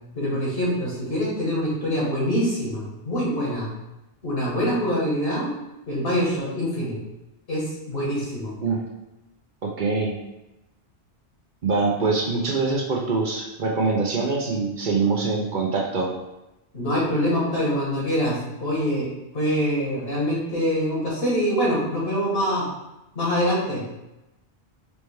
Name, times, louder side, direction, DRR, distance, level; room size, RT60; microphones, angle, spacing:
voice 1, 0.1-3.7 4.2-5.5 5.9-7.0 7.5-8.6 16.7-19.1 19.3-22.7 23.1-23.8, equal, 55° left, -6 dB, 1.5 m, -24 dB
voice 2, 9.6-10.2 11.6-16.1, right 4 dB, 50° right, -1 dB, 0.7 m, -24 dB
4.3 x 3.3 x 3.3 m, 0.95 s
omnidirectional pair, 1.2 m